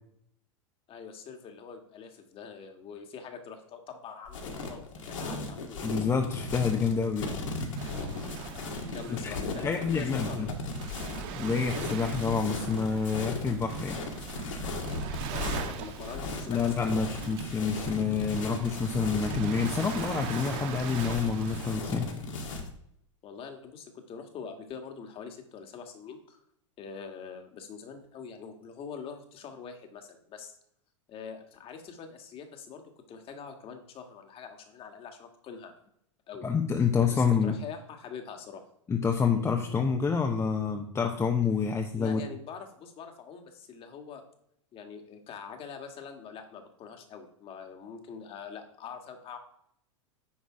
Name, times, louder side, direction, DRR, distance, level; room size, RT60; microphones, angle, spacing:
voice 1, 0.9-4.8 5.1-5.8 8.8-10.8 15.2-17.1 23.2-26.4 26.8-30.6 31.1-32.8 33.1-35.7 36.3-36.5 37.1-38.7 42.0-44.2 44.7-49.4, left 6 dB, 35° left, 5 dB, 1.8 m, -44 dB
sound 1, 4.3-22.7, left 3 dB, 75° left, 2.1 m, -36 dB
voice 2, 5.8-7.4 9.1-9.4 9.6-10.5 11.3-14.0 16.5-22.1 36.4-37.6 38.9-42.2, left 5 dB, 15° left, 3 dB, 0.9 m, -28 dB
Waves surf, 7.8-21.8, right 7 dB, 55° right, 1.3 m, -42 dB
9.7 x 3.9 x 4.9 m, 0.73 s
hypercardioid pair, 105°, 16 cm